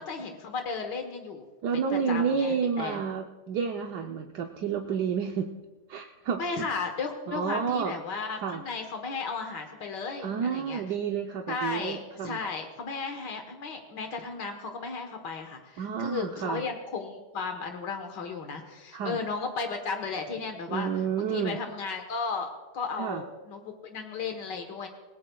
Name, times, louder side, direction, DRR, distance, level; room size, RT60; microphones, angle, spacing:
voice 1, 0.0-1.4 1.9-3.0 6.4-10.8 11.5-20.9 21.2-24.9, left 4 dB, 90° left, 4 dB, 2.0 m, -35 dB
voice 2, 1.6-5.5 5.9-6.7 7.3-7.9 8.4-8.6 10.2-12.4 15.8-16.6 18.9-19.2 20.7-21.6 23.0-23.2, right 6 dB, 75° right, 3 dB, 1.4 m, -30 dB
27.0 x 17.5 x 2.3 m, 1.2 s
omnidirectional pair, 1.8 m